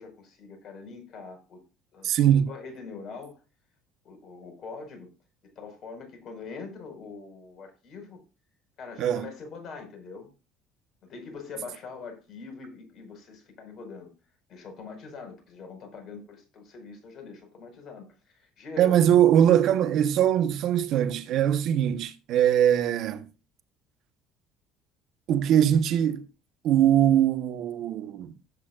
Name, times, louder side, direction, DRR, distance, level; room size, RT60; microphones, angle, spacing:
voice 1, 0.0-1.6 1.9-2.1 2.5-3.4 4.0-5.1 5.4-8.2 8.8-10.3 11.0-14.1 14.5-19.0 25.6-25.8, left 4 dB, 55° left, 5.0 m, -43 dB
voice 2, 2.0-2.5 9.0-9.3 18.8-23.3 25.3-26.2 26.6-28.3, right 10 dB, 60° right, 1.1 m, -22 dB
16.5 x 8.5 x 2.5 m
hypercardioid pair, 65°, 0 cm